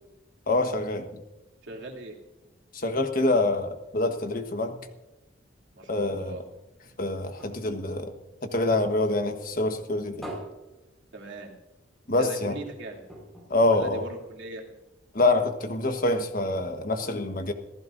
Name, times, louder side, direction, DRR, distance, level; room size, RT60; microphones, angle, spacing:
voice 1, 0.5-1.1 2.7-4.8 5.9-6.3 7.0-8.1 8.4-10.3 12.1-12.5 13.5-14.0 15.1-17.5, left 2 dB, 50° left, 6 dB, 1.3 m, -26 dB
voice 2, 1.6-2.2 5.7-6.4 11.1-11.5 12.1-13.0 13.7-14.6, right 2 dB, 85° right, -1 dB, 2.9 m, -39 dB
sound 1, 6.5-9.1 9.5-11.7 12.1-12.2 12.5-12.6 13.0-14.6 15.2-15.3, equal, ahead, 4.8 m, -45 dB
26.5 x 15.0 x 2.6 m, 1.0 s
head